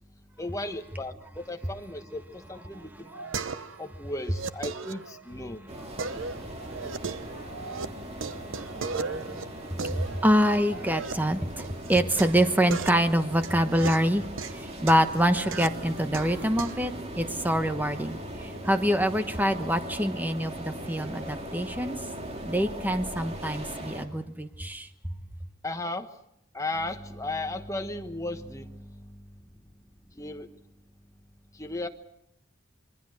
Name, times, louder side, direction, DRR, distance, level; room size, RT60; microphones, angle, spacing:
voice 1, 0.4-3.1 3.8-5.7 25.6-26.1 26.5-29.2 30.1-30.5 31.5-31.9, left 2 dB, 15° left, 6 dB, 1.3 m, -35 dB
sound 1, 2.5-3.9 4.2-5.5 6.0-7.9 8.1-11.1 11.6-16.9, right 4 dB, 80° right, 0.9 m, -37 dB
voice 2, 5.7-14.2 14.5-22.0 22.4-24.9, equal, 10° right, 8 dB, 1.2 m, -27 dB
sound 2, 5.7-24.0, right 1 dB, 30° right, 2.5 m, -39 dB
26.0 x 22.5 x 6.5 m, 0.77 s
head